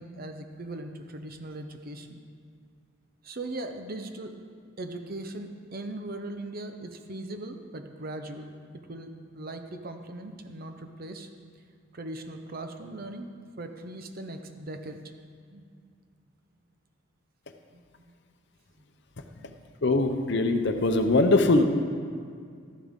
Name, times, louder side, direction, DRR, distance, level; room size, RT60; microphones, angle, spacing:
voice 1, 0.0-2.2 3.2-4.3 4.8-11.3 11.9-13.3 13.6-15.0 15.5-16.0 17.7-18.1 18.8-18.9 19.3-19.6, right 2 dB, 45° right, 6 dB, 0.8 m, -39 dB
voice 2, 19.8-21.6, left 2 dB, 55° left, 7 dB, 0.7 m, -22 dB
13.5 x 11.0 x 3.7 m, 2.2 s
head